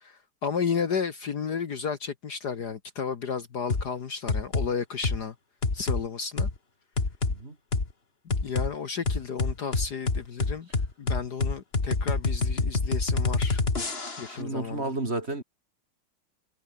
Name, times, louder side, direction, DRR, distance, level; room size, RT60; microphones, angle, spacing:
voice 1, 0.0-5.3 5.7-6.5 8.4-10.7 11.0-13.6 14.2-14.9, left 6 dB, 55° left, 1.9 m, -32 dB
sound 1, 3.7-3.9 4.3-4.7 5.0-5.2 5.6-6.0 6.4-6.5 7.0-7.4 7.7-7.9 8.3-8.7 9.1-14.4, left 3 dB, 30° left, 2.4 m, -26 dB
voice 2, 14.3-15.4, right 2 dB, 30° right, 3.4 m, -32 dB
omnidirectional pair, 2.3 m